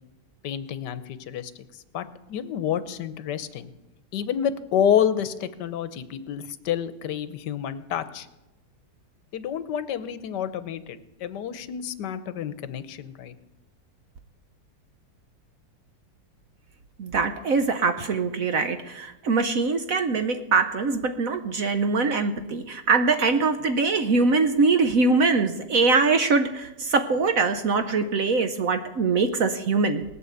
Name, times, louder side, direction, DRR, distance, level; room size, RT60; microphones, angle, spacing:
voice 1, 0.4-3.7 4.1-8.3 9.3-13.3, left 9 dB, 70° left, 13 dB, 1.4 m, -29 dB
voice 2, 17.0-30.0, right 4 dB, 55° right, 8 dB, 1.1 m, -23 dB
18.5 x 8.4 x 7.9 m, 0.99 s
omnidirectional pair, 2.0 m